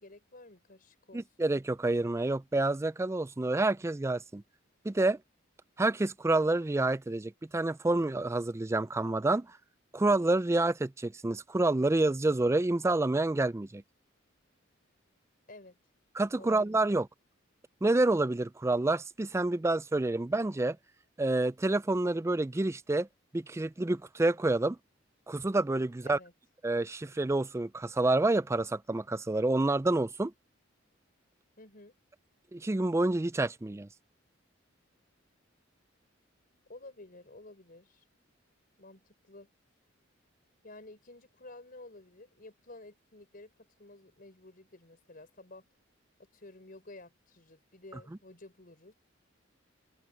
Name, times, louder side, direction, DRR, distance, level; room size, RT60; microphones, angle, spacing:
voice 1, 0.0-1.2 15.5-15.8 16.4-16.7 26.0-26.3 31.6-31.9 36.7-38.0 38.8-39.5 40.6-43.5 43.8-45.7 46.2-48.9, left 2 dB, 45° left, 4.7 m, -52 dB
voice 2, 1.1-4.4 4.8-5.2 5.8-9.6 9.9-13.8 16.2-17.1 17.8-20.8 21.2-23.1 23.3-24.8 25.3-26.2 26.6-30.3 32.5-33.9, right 2 dB, 15° right, 0.4 m, -28 dB
head